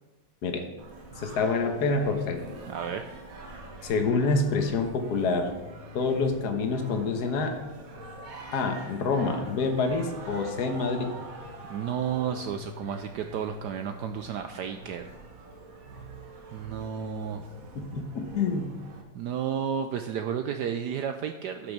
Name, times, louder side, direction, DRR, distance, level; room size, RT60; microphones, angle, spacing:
Singing, 0.8-19.0, right 1 dB, 50° right, 1.5 m, -45 dB
voice 1, 1.2-2.4 3.8-5.5 5.9-7.5 8.5-11.1 17.7-18.7, left 4 dB, 55° left, 4 dB, 1.6 m, -27 dB
voice 2, 2.7-3.1 11.7-15.1 16.5-17.5 19.1-21.7, right 8 dB, 70° right, 7 dB, 1.0 m, -32 dB
11.5 x 6.1 x 6.0 m, 1.1 s
omnidirectional pair, 2.1 m